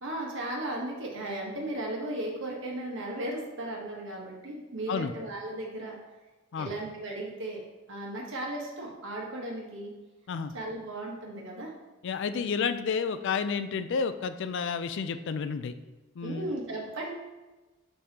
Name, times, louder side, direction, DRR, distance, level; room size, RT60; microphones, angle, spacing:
voice 1, 0.0-5.9 6.6-7.6 7.9-9.9 10.5-11.7 12.4-12.5 16.2-17.1, right 1 dB, 65° right, -1 dB, 1.3 m, -36 dB
voice 2, 12.0-15.7 16.2-16.5, left 5 dB, 60° left, 11 dB, 0.4 m, -30 dB
6.3 x 5.3 x 2.9 m, 1.2 s
head